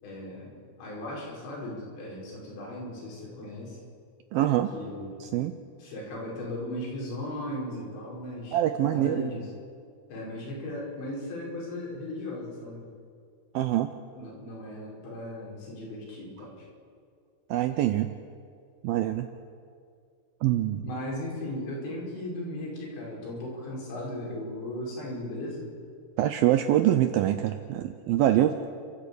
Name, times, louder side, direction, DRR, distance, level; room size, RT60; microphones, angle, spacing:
voice 1, 0.0-3.8 4.7-5.2 5.8-8.6 8.9-9.5 10.1-12.8 14.2-16.5 20.8-25.7, left 1 dB, 85° left, -3 dB, 7.5 m, -37 dB
voice 2, 4.3-4.7 5.2-5.6 8.5-9.2 13.5-13.9 17.5-18.1 18.8-19.3 20.4-20.8 26.2-28.6, right 12 dB, 80° right, 9 dB, 2.1 m, -24 dB
30.0 x 13.5 x 8.4 m, 2.3 s
omnidirectional pair, 5.0 m